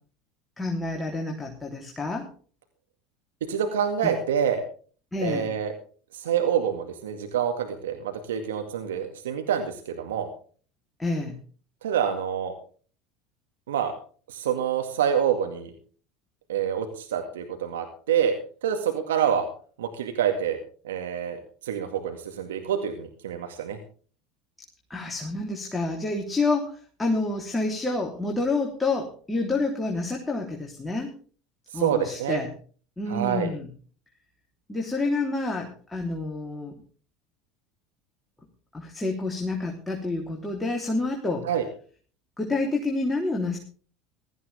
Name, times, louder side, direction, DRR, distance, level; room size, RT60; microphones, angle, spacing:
voice 1, 0.6-2.3 5.1-5.5 11.0-11.4 24.9-31.1 31.7-32.5 33.0-33.7 34.7-36.8 38.7-41.5 42.4-43.6, left 3 dB, 15° left, 0 dB, 3.4 m, -28 dB
voice 2, 3.5-4.6 5.2-5.7 6.1-10.3 11.8-12.5 13.7-13.9 14.3-15.7 16.5-18.4 18.6-19.5 19.8-20.6 20.8-23.8 31.7-32.4 33.1-33.5 41.4-41.6, right 8 dB, 85° right, 6 dB, 2.1 m, -27 dB
16.5 x 14.0 x 3.5 m, 0.41 s
hypercardioid pair, 85°, 0 cm